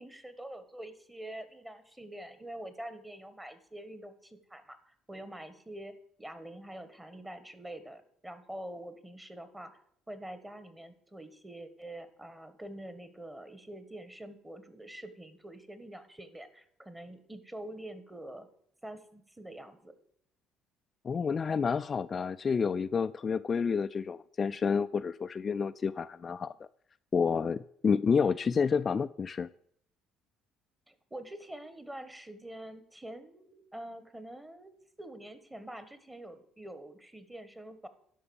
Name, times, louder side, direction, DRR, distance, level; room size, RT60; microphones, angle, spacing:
voice 1, 0.0-9.7 10.1-18.5 18.8-19.9 30.9-37.9, right 1 dB, 10° right, 11 dB, 1.4 m, -46 dB
voice 2, 21.0-26.5 27.1-29.5, left 6 dB, 35° left, 10 dB, 0.3 m, -29 dB
11.0 x 5.4 x 7.0 m, 0.67 s
cardioid pair, 100°, 0 cm